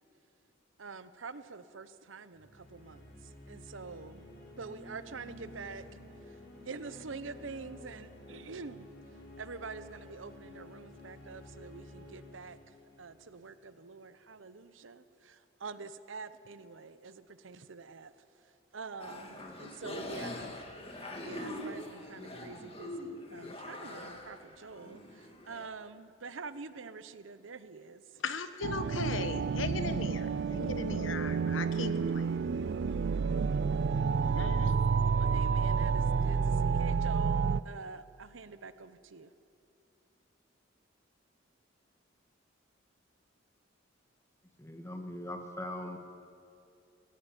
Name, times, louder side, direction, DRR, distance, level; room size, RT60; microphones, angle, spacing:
voice 1, 0.8-3.1 3.5-4.3 4.6-5.8 6.6-8.9 9.4-12.6 13.0-18.1 18.7-20.5 20.9-28.2 35.2-39.3, right 4 dB, 75° right, 13 dB, 0.8 m, -46 dB
sound 1, 2.3-13.9, left 1 dB, 60° left, 4.7 m, -52 dB
sound 2, 19.0-25.7, left 1 dB, 30° left, 1.9 m, -43 dB
voice 2, 28.2-32.4 34.3-34.8, left 4 dB, 75° left, 10 dB, 1.1 m, -38 dB
sound 3, 28.6-37.6, right 5 dB, 60° right, 0.4 m, -29 dB
voice 3, 44.6-46.0, left 1 dB, 15° left, 4 dB, 1.7 m, -40 dB
18.5 x 16.5 x 9.0 m, 2.6 s
head